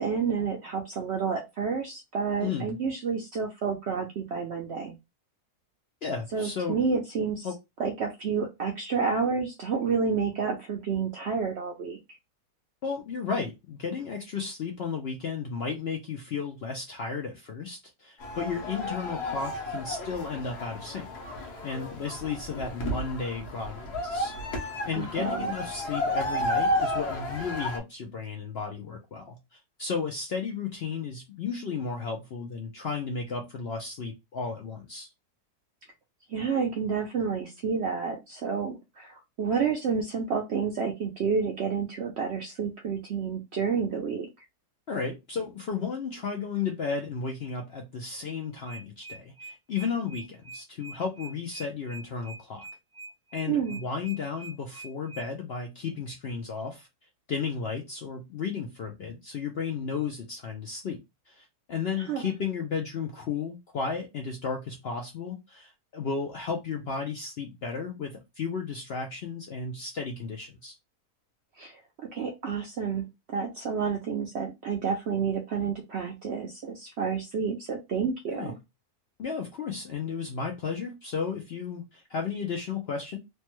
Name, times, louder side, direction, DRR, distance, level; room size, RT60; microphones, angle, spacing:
voice 1, 0.0-5.0 6.3-7.5 7.8-12.0 24.9-25.5 36.3-44.3 53.5-53.8 62.0-62.3 71.6-71.8 72.1-78.6, right 6 dB, 65° right, 0.6 m, -30 dB
voice 2, 2.4-2.8 6.0-6.8 7.4-7.5 12.8-21.1 21.4-24.3 24.6-35.1 44.9-52.7 53.3-56.9 57.3-70.8 78.3-78.5 79.2-83.2, left 5 dB, 65° left, 0.6 m, -34 dB
sound 1, 18.2-27.8, left 1 dB, 90° left, 1.4 m, -32 dB
sound 2, 48.6-55.2, right 3 dB, 20° right, 0.7 m, -44 dB
3.2 x 2.1 x 2.9 m
omnidirectional pair, 1.6 m